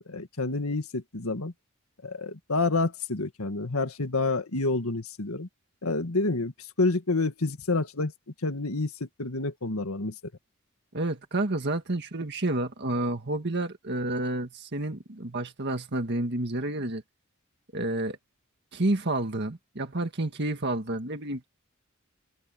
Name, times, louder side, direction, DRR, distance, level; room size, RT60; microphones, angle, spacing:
voice 1, 0.0-1.5 2.0-5.5 5.8-8.1 8.4-10.1, left 3 dB, 80° left, 1.8 m, -28 dB
voice 2, 10.9-17.0 17.7-18.2 18.7-21.5, right 2 dB, 55° right, 1.8 m, -30 dB
head